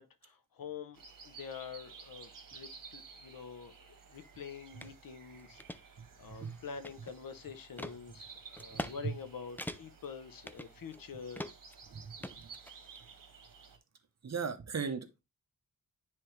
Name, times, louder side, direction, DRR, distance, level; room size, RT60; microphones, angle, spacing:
voice 1, 0.0-3.8 4.1-5.9 6.2-11.4, left 6 dB, 90° left, 0.9 m, -46 dB
sound 1, 0.9-13.8, right 5 dB, 70° right, 1.5 m, -54 dB
sound 2, 4.8-4.9 5.4-5.8 6.3-7.3 7.8-8.0 8.6-9.0 9.2-9.3 9.6-10.1 10.5-11.0 11.4-11.8 12.2-13.0, left 1 dB, 5° left, 0.4 m, -42 dB
voice 2, 6.0-6.6 8.7-9.2 11.9-12.5 14.2-15.2, right 5 dB, 50° right, 1.0 m, -39 dB
9.8 x 3.4 x 3.2 m
wide cardioid pair, 120°, 33 cm